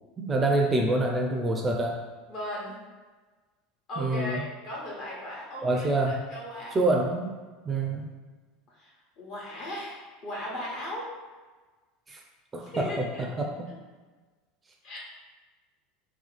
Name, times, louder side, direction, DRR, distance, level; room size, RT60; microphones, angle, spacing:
voice 1, 0.2-2.0 4.0-4.4 5.6-6.2 6.7-7.4 7.7-8.1 12.1-12.2 12.5-13.1 13.4-13.5, right 2 dB, 20° right, 1 dB, 0.4 m, -26 dB
voice 2, 2.3-2.8 3.9-6.8 8.8-11.1 12.6-13.3 14.8-15.0, left 1 dB, 45° left, -5 dB, 1.1 m, -37 dB
2.8 x 2.2 x 3.9 m, 1.3 s
figure-of-eight pair, 75°, 0 cm